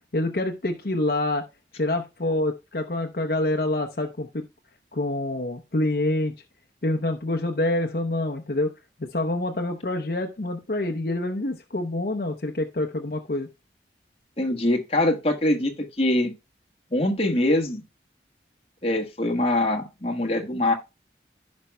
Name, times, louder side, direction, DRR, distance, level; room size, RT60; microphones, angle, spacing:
voice 1, 0.1-1.4 1.8-4.4 4.9-6.3 6.8-8.7 9.0-13.5, left 1 dB, 55° left, 0.8 m, -26 dB
voice 2, 14.4-16.3 16.9-17.8 18.8-20.7, left 1 dB, 35° left, 1.3 m, -23 dB
15.5 x 5.3 x 2.2 m
head